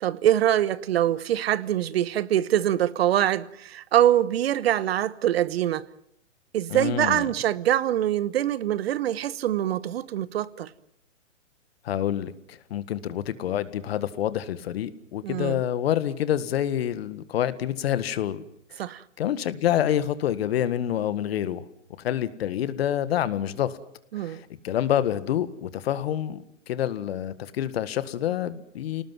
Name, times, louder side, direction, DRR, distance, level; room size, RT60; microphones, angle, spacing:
voice 1, 0.0-5.9 6.5-10.7 15.2-15.6 18.8-19.0 24.1-24.4, right 11 dB, 55° right, 1.2 m, -24 dB
voice 2, 6.7-7.3 11.8-18.4 18.7-18.8 19.2-21.7 22.0-23.8 24.2-29.0, left 11 dB, 50° left, 1.8 m, -27 dB
29.5 x 19.0 x 7.6 m
hypercardioid pair, 140°, 38 cm